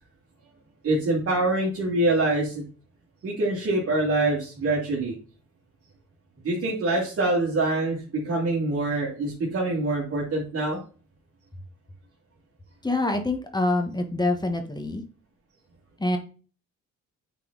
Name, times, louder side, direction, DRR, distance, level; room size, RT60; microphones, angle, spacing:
voice 1, 0.8-2.6 3.2-5.2 6.4-10.8, right 2 dB, 50° right, -5 dB, 2.7 m, -25 dB
voice 2, 12.8-15.0 16.0-16.2, left 2 dB, 15° left, 5 dB, 1.5 m, -25 dB
8.9 x 4.2 x 4.0 m, 0.37 s
cardioid pair, 90°, 30 cm